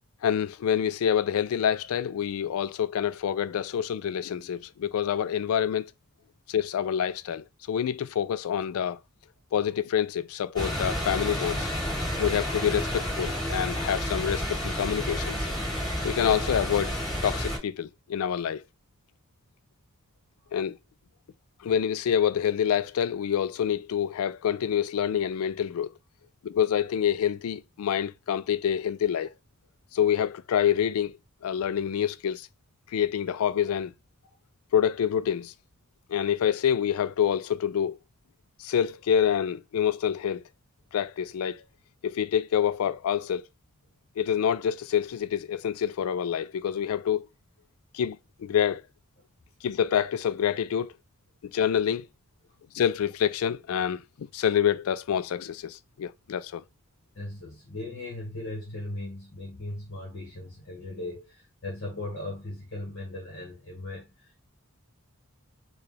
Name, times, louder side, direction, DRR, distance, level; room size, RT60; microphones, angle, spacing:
voice 1, 0.2-5.8 6.5-9.0 9.5-11.7 12.2-15.4 16.0-16.9 17.2-18.6 20.5-20.8 21.6-25.9 26.4-29.3 29.9-31.2 31.4-32.5 32.9-33.9 34.7-35.5 36.1-38.0 38.6-40.4 40.9-41.6 42.0-43.4 44.2-47.3 47.9-48.8 49.6-50.9 51.4-52.1 52.7-56.6, left 9 dB, 80° left, 0.3 m, -27 dB
sound 1, 10.6-17.6, equal, 20° left, 2.3 m, -30 dB
voice 2, 57.1-64.5, left 2 dB, 55° left, 1.4 m, -38 dB
4.7 x 2.4 x 3.2 m
head